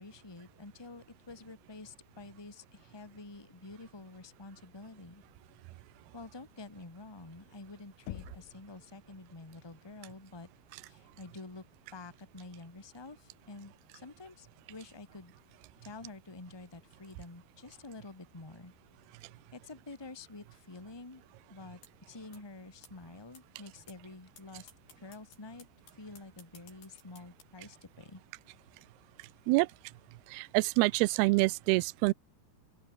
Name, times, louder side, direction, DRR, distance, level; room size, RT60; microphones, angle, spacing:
voice 1, 0.0-5.2 6.1-10.5 10.8-11.6 11.9-15.3 15.8-18.7 19.5-21.2 21.5-21.8 22.1-24.7 25.0-25.6 25.9-28.2, left 3 dB, 10° left, 1.6 m, -49 dB
Knock, 8.1-8.7, left 20 dB, 85° left, 2.8 m, -44 dB
sound 1, 21.8-21.9 22.3-22.4 22.8-22.9 23.3-23.4 23.9-24.0 24.4-24.5 24.7-27.4, left 4 dB, 65° left, 9.5 m, -55 dB
voice 2, 30.3-32.1, right 23 dB, 80° right, 2.5 m, -26 dB
open air
omnidirectional pair, 4.8 m